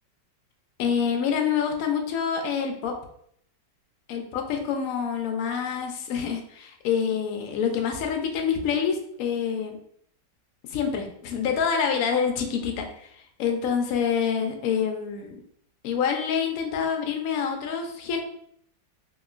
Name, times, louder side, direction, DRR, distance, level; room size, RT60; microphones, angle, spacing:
voice 1, 0.8-2.9 4.1-9.8 10.7-13.1 13.4-15.4 15.8-18.2, left 7 dB, 75° left, 4 dB, 0.8 m, -26 dB
2.9 x 2.9 x 2.4 m, 0.68 s
omnidirectional pair, 2.0 m